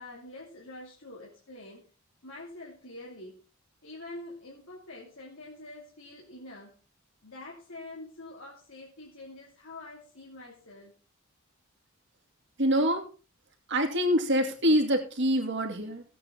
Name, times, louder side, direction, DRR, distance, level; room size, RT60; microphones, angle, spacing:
voice 1, 0.0-1.8 2.2-3.4 3.8-6.7 7.2-10.9, left 2 dB, 70° left, -3 dB, 2.6 m, -46 dB
voice 2, 12.6-13.1 13.7-16.0, equal, 55° right, 3 dB, 2.5 m, -25 dB
16.5 x 8.6 x 3.7 m, 0.34 s
head